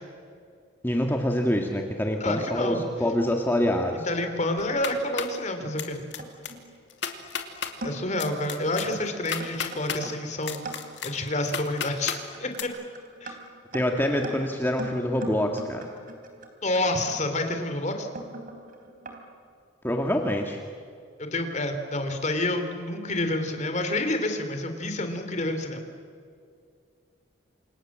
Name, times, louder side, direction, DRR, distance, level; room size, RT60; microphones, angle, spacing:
voice 1, 0.8-4.1 13.7-15.9 19.8-20.6, left 1 dB, 10° left, 2 dB, 1.8 m, -26 dB
voice 2, 2.2-2.8 3.9-6.0 7.8-10.6 11.0-12.7 13.2-13.4 16.6-18.1 21.2-25.8, left 1 dB, 40° left, 6 dB, 3.5 m, -28 dB
sound 1, 4.6-5.4 5.8-6.2 6.4-6.5 6.9-7.7 8.2-10.0 10.4-12.2 12.5-12.6, left 7 dB, 65° left, 2.6 m, -33 dB
sound 2, 5.8-6.7 7.3-7.4 7.8-8.2 8.9-9.0 9.4-19.2, right 2 dB, 45° right, 4.1 m, -41 dB
29.5 x 27.0 x 7.6 m, 2.3 s
head